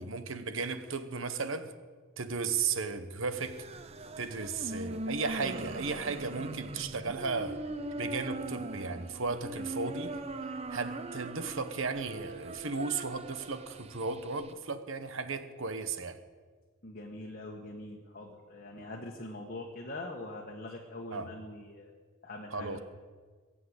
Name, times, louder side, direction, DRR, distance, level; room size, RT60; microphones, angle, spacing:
voice 1, 0.0-1.7 2.2-3.7 4.2-7.6 8.0-10.2 10.7-16.2 21.1-21.3 22.5-22.8, right 4 dB, 60° right, 1.1 m, -35 dB
sound 1, 3.3-14.5, right 2 dB, 30° right, 0.6 m, -41 dB
voice 2, 16.8-21.9 22.2-22.8, left 2 dB, 40° left, 1.5 m, -43 dB
22.0 x 7.8 x 8.2 m
head